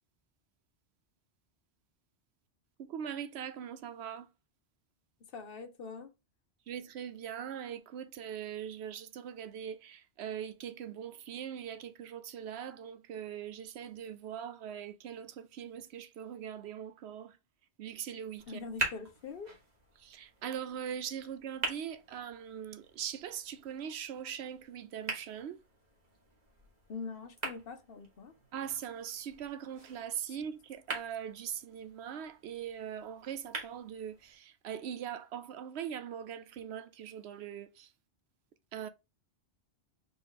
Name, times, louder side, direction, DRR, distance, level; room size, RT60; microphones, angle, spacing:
voice 1, 2.8-4.3 6.7-17.4 17.8-18.6 20.0-25.6 28.5-37.9 38.7-38.9, right 9 dB, 75° right, 0.8 m, -41 dB
voice 2, 5.3-6.1 18.5-19.5 26.9-28.3, left 4 dB, 60° left, 0.9 m, -43 dB
sound 1, 18.4-34.4, right 2 dB, 40° right, 1.5 m, -44 dB
4.4 x 2.9 x 3.7 m
omnidirectional pair, 1.1 m